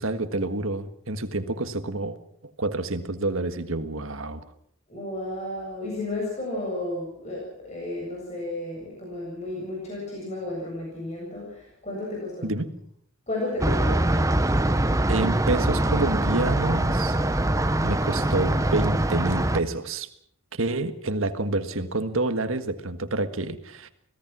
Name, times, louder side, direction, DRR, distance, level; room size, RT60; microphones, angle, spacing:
voice 1, 0.0-2.2 2.6-4.4 12.4-12.7 15.1-17.2 17.8-20.1 20.5-23.9, right 2 dB, 70° right, 9 dB, 1.6 m, -28 dB
voice 2, 4.9-12.5 13.3-14.0, left 2 dB, 30° left, -3 dB, 7.6 m, -33 dB
sound 1, 13.6-19.6, right 1 dB, 15° right, 0.8 m, -23 dB
25.5 x 17.5 x 6.2 m, 0.68 s
head